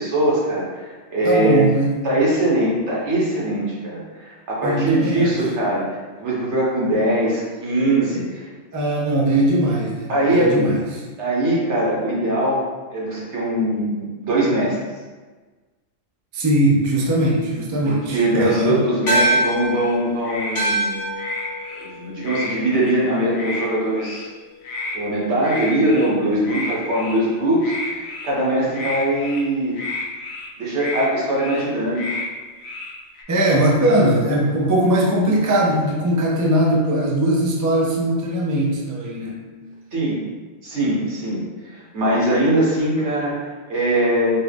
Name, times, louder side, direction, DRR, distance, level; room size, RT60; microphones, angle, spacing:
voice 1, 0.0-1.7 2.0-8.5 10.1-10.7 11.2-12.7 12.9-14.8 17.8-21.0 21.8-24.3 24.9-29.8 30.6-32.2 39.9-40.2 40.6-44.4, right 1 dB, 70° right, -5 dB, 1.4 m, -21 dB
voice 2, 1.2-1.9 4.6-5.3 8.7-11.0 16.3-18.9 33.3-39.5, right 1 dB, 25° right, -2 dB, 0.4 m, -20 dB
sound 1, 18.2-18.6 19.0-19.4 19.7-20.6 21.1-21.9 22.2-22.9 23.3-23.7 23.9-24.2 24.6-25.0 25.4-26.1 26.4-27.3 27.6-28.3 28.7-29.4 29.7-30.5 30.7-31.1 31.3-31.7 31.9-32.3 32.6-33.2, left 2 dB, 65° left, 1.0 m, -31 dB
sound 2, 19.1-23.7, right 1 dB, 85° left, 1.3 m, -25 dB
4.6 x 2.5 x 3.4 m, 1.3 s
omnidirectional pair, 1.2 m